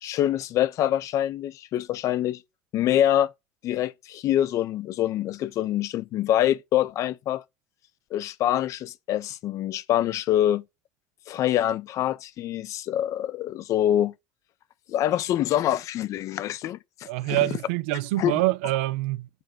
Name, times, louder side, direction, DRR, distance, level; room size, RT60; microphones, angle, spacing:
voice 1, 0.0-2.4 2.7-3.3 3.6-7.4 8.1-10.6 11.3-14.1 14.9-16.8 17.3-17.5 18.2-18.4, left 12 dB, 50° left, 0.5 m, -25 dB
voice 2, 17.1-19.3, right 18 dB, 70° right, 0.4 m, -25 dB
6.8 x 3.2 x 5.9 m
hypercardioid pair, 65°, 7 cm